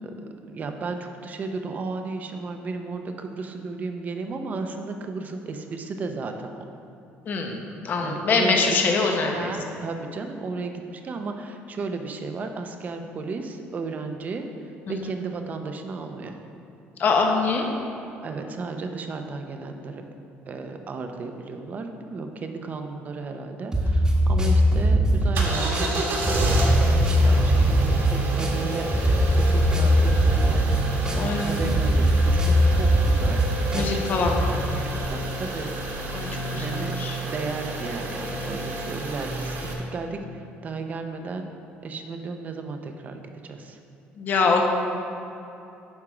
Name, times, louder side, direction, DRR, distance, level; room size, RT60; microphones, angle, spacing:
voice 1, 0.4-6.6 8.0-16.4 18.2-20.0 20.5-33.4 33.7-34.4 34.7-36.9 37.2-39.6 39.9-41.5 41.8-43.8, right 4 dB, 35° right, 5 dB, 0.7 m, -34 dB
voice 2, 7.3-9.5 14.9-15.1 17.0-17.7 31.1-31.8 33.7-34.4 36.1-37.2 44.2-44.7, left 4 dB, 45° left, 2 dB, 1.0 m, -24 dB
sound 1, 23.7-34.4, equal, 15° right, 1.2 m, -21 dB
sound 2, 25.3-39.7, right 2 dB, 60° right, 1.5 m, -30 dB
9.6 x 3.6 x 6.1 m, 2.8 s
cardioid pair, 120°, 4 cm